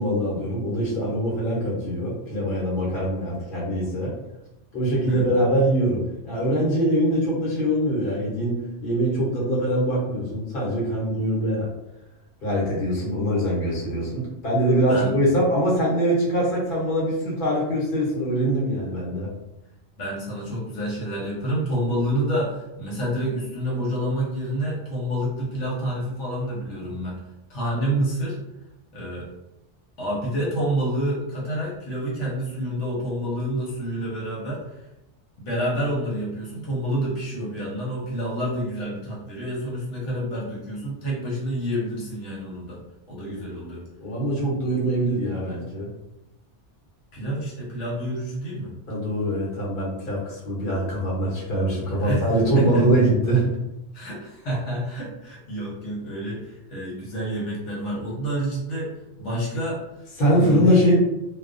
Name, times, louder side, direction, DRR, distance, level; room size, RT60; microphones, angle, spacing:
voice 1, 0.0-4.1 4.7-11.7 12.4-19.3 43.3-43.4 44.0-45.9 48.9-53.5 60.2-60.9, right 1 dB, 50° left, -5 dB, 1.0 m, -23 dB
voice 2, 20.0-27.2 27.5-28.4 28.9-29.3 30.0-34.8 35.4-42.8 43.1-43.8 47.1-48.7 52.0-52.3 52.5-52.9 53.9-58.9 59.2-60.0 60.3-60.9, right 1 dB, 80° left, -5 dB, 1.1 m, -28 dB
2.3 x 2.1 x 2.5 m, 0.91 s
omnidirectional pair, 1.2 m